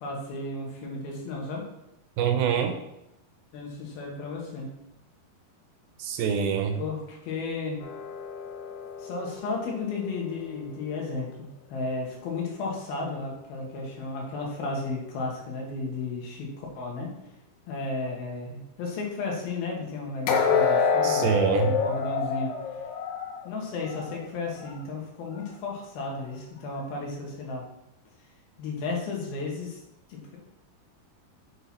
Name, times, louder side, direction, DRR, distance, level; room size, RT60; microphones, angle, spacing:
voice 1, 0.0-1.7 3.5-4.7 6.8-7.9 9.0-17.1 17.7-21.3 21.5-22.5 23.4-27.7 28.6-29.8 30.1-30.4, left 3 dB, 70° left, -1 dB, 3.2 m, -34 dB
voice 2, 2.2-2.7 6.0-6.8 21.0-21.8, right 7 dB, 80° right, 6 dB, 2.4 m, -25 dB
sound 1, 7.8-10.9 20.3-24.2 24.6-24.8 25.4-25.5, left 6 dB, 90° left, 3.1 m, -28 dB
7.9 x 6.0 x 4.2 m, 0.86 s
omnidirectional pair, 4.6 m